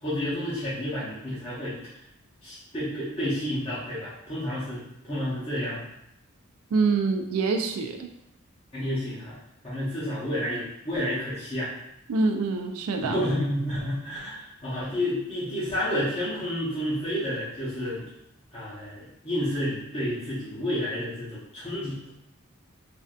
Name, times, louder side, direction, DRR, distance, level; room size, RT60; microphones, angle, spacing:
voice 1, 0.0-1.8 2.4-5.8 8.7-9.3 9.6-11.7 13.0-18.0 18.5-22.0, equal, 25° left, -10 dB, 0.8 m, -30 dB
voice 2, 6.7-8.1 12.1-13.2, right 4 dB, 85° right, 4 dB, 0.4 m, -25 dB
3.3 x 2.6 x 2.4 m, 0.80 s
head